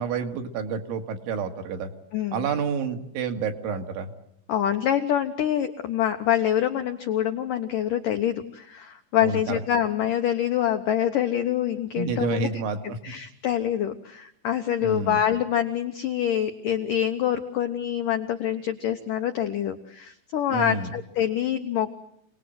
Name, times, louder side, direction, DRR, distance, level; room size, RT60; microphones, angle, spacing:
voice 1, 0.0-1.9 2.3-4.1 9.2-9.6 11.9-12.8 14.8-15.2 20.5-21.0, right 5 dB, 75° right, 5 dB, 4.3 m, -29 dB
voice 2, 2.1-2.5 4.5-12.5 12.8-22.0, left 10 dB, 80° left, 6 dB, 1.9 m, -26 dB
28.5 x 19.5 x 7.9 m, 0.76 s
omnidirectional pair, 5.6 m